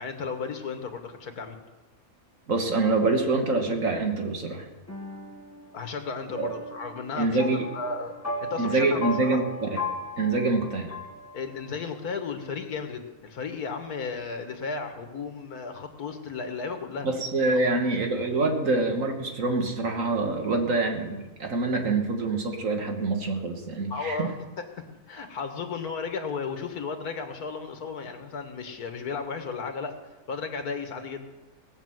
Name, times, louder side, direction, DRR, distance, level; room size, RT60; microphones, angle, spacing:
voice 1, 0.0-1.6 5.7-7.4 7.7-8.2 8.4-9.4 11.3-17.1 17.5-17.8 23.9-30.0 30.3-31.3, left 5 dB, 90° left, 6 dB, 1.9 m, -34 dB
voice 2, 2.5-4.7 6.4-6.5 7.2-7.7 8.6-9.7 10.2-10.9 17.0-24.3, right 3 dB, 60° right, 3 dB, 1.9 m, -25 dB
sound 1, 4.9-11.8, left 2 dB, 10° left, 1.5 m, -37 dB
18.5 x 6.6 x 7.7 m, 1.2 s
omnidirectional pair, 1.6 m